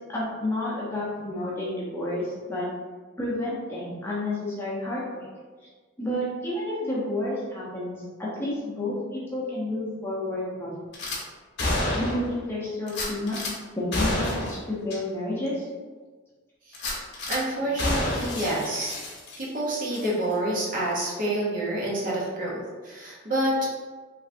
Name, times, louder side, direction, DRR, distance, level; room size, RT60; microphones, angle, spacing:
voice 1, 0.1-2.7 3.2-5.3 6.0-10.7 11.0-11.1 12.0-15.7, left 1 dB, 10° left, -7 dB, 0.6 m, -30 dB
Gunshot gunfire / Glass, 10.9-11.2 11.6-12.3 12.9-13.5 13.9-14.6 14.9-15.0 15.5-15.6 16.7-17.4 17.8-19.6 19.9-20.1, left 1 dB, 55° left, 0.8 m, -29 dB
voice 2, 17.3-18.9 19.4-23.7, right 1 dB, 40° right, -5 dB, 0.7 m, -28 dB
3.3 x 3.0 x 2.5 m, 1.4 s
head